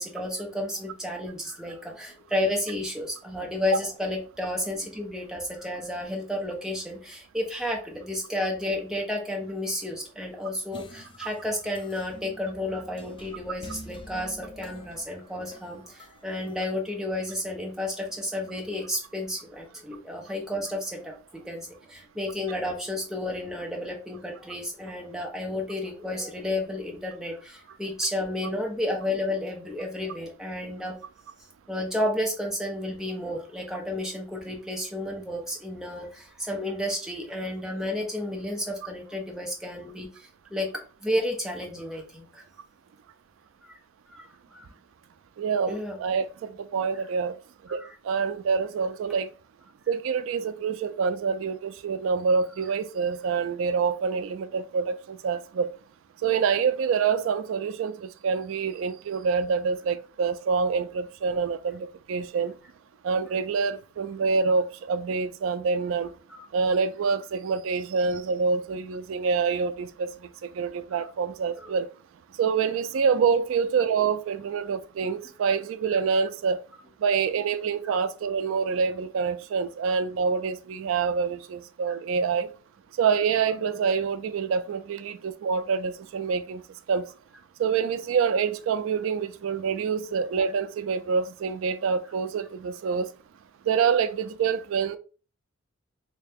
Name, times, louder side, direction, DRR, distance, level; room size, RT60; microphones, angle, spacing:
voice 1, 0.0-31.0 31.7-40.7 41.0-42.4 43.6-43.7 44.1-44.2 44.5-44.7 45.7-46.0 47.7-47.9 66.3-66.4 70.9-71.0 71.6-71.7 75.9-76.0 77.8-77.9 81.9-82.0, left 1 dB, 5° right, 0.8 m, -32 dB
sound 1, 10.7-16.7, left 1 dB, 25° left, 0.4 m, -47 dB
voice 2, 45.4-47.3 47.7-47.8 48.0-49.3 49.9-55.7 56.2-62.5 63.0-66.1 66.5-70.1 70.4-71.9 72.4-76.6 77.0-82.5 83.0-86.6 86.9-87.1 87.6-93.1 93.7-95.0, right 5 dB, 80° right, 0.3 m, -26 dB
3.2 x 2.8 x 3.4 m
head